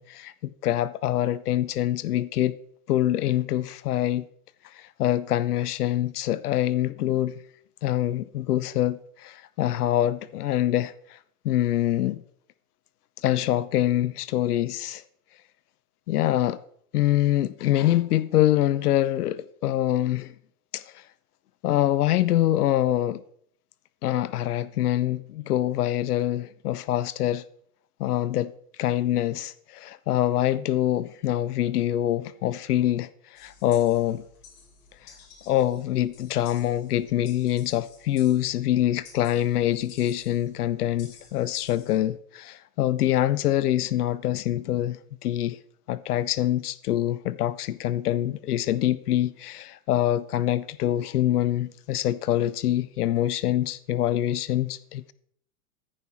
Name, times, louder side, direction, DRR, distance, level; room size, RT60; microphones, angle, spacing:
voice 1, 0.0-2.5 2.9-4.2 4.6-7.3 7.8-11.2 11.4-12.2 13.2-15.0 16.1-16.6 16.9-20.3 20.7-21.0 21.6-23.2 24.0-27.4 28.0-28.5 28.8-34.2 35.0-35.1 35.5-45.6 45.9-55.1, left 13 dB, 85° left, 0.6 m, -25 dB
sound 1, 33.4-42.0, left 5 dB, 65° left, 4.5 m, -53 dB
14.0 x 5.7 x 4.4 m
hypercardioid pair, 110°, 44 cm